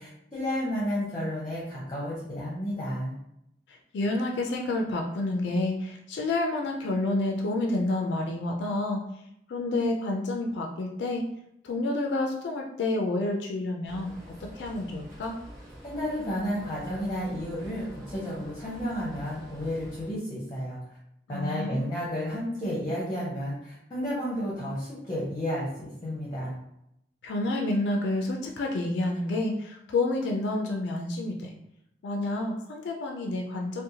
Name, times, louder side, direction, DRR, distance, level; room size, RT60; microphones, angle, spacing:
voice 1, 0.0-3.2 15.8-20.8 21.3-26.5, equal, 25° left, -6 dB, 0.6 m, -32 dB
voice 2, 3.7-9.0 9.5-11.2 11.6-14.1 14.4-15.4 21.3-21.8 27.2-31.5 32.0-33.8, left 2 dB, 70° left, 2 dB, 0.3 m, -29 dB
sound 1, 13.8-20.1, equal, 50° right, 1.1 m, -47 dB
2.7 x 2.1 x 2.7 m, 0.80 s
head